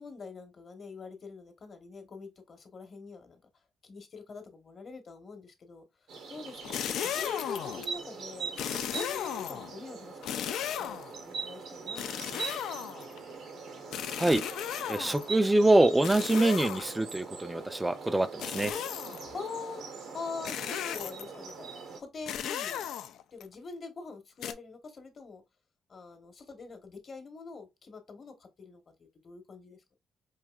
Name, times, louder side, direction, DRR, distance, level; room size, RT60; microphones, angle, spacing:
voice 1, 0.0-3.4 3.8-5.9 6.3-10.2 10.6-12.9 19.2-19.8 20.1-22.9 23.3-25.4 25.9-30.0, left 4 dB, 45° left, 1.0 m, -44 dB
sound 1, 6.1-22.0, right 5 dB, 80° right, 1.1 m, -42 dB
sound 2, 6.6-7.9 8.6-9.7 10.2-11.2 12.0-13.2 13.9-15.3 16.0-17.1 18.4-19.3 20.4-21.4 22.3-23.4 24.4-24.5, left 10 dB, 80° left, 0.4 m, -35 dB
voice 2, 14.9-18.7, right 2 dB, 10° right, 0.5 m, -25 dB
4.8 x 2.6 x 2.3 m
cardioid pair, 90°, 0 cm